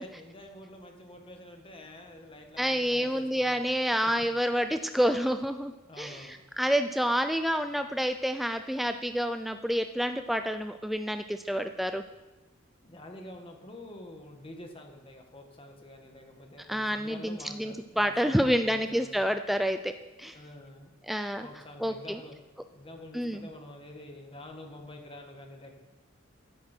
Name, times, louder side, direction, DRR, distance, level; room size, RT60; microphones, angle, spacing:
voice 1, 0.0-3.8 5.9-6.4 12.8-19.3 20.2-20.9 21.4-22.3 22.7-25.7, left 1 dB, 30° left, 3 dB, 1.6 m, -47 dB
voice 2, 2.6-6.3 6.6-12.0 16.7-19.9 20.2-20.4 21.1-21.5 21.8-22.2 23.1-23.5, equal, ahead, 8 dB, 0.4 m, -28 dB
13.5 x 11.0 x 4.5 m, 1.0 s
head